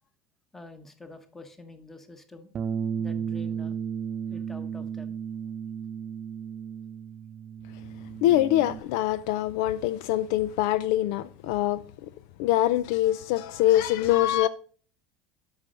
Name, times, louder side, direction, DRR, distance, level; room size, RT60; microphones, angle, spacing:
voice 1, 0.5-2.5 3.0-3.8 4.3-5.1, left 2 dB, 10° left, 1.2 m, -47 dB
Bass guitar, 2.5-8.8, right 7 dB, 30° right, 0.4 m, -34 dB
voice 2, 8.2-11.8 12.4-14.5, left 14 dB, 80° left, 0.4 m, -24 dB
8.4 x 6.2 x 5.1 m
cardioid pair, 140°, 3 cm